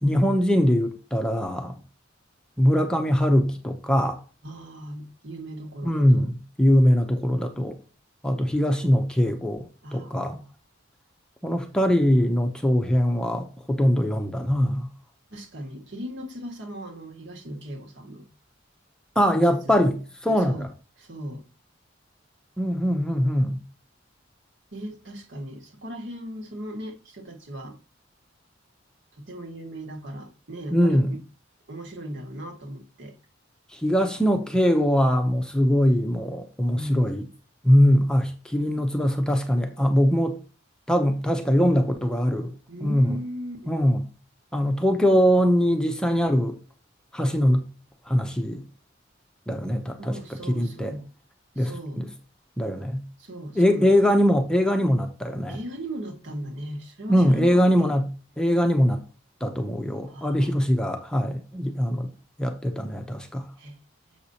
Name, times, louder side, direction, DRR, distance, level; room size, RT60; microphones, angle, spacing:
voice 1, 0.0-1.7 2.6-4.2 5.8-7.8 8.2-10.4 11.4-14.9 19.2-20.0 20.2-20.7 22.6-23.6 30.7-31.2 33.7-37.2 37.6-40.4 40.9-42.5 42.8-43.2 43.7-44.0 44.5-46.6 47.1-47.6 48.1-48.6 49.5-50.1 50.5-50.9 51.6-51.7 52.0-52.1 52.6-53.0 53.6-55.6 57.1-58.1 58.4-59.0 59.4-62.1 62.4-63.5, equal, 5° left, 0.7 m, -22 dB
voice 2, 4.4-6.3 9.8-10.5 15.3-18.2 19.3-19.8 20.4-20.7 21.0-21.4 24.7-27.8 29.2-31.2 31.7-33.1 36.7-37.1 42.7-43.8 50.0-51.1 51.6-52.0 53.2-53.9 55.5-57.9 60.0-60.5 63.6-63.8, equal, 65° right, 1.8 m, -38 dB
7.2 x 6.5 x 2.8 m
head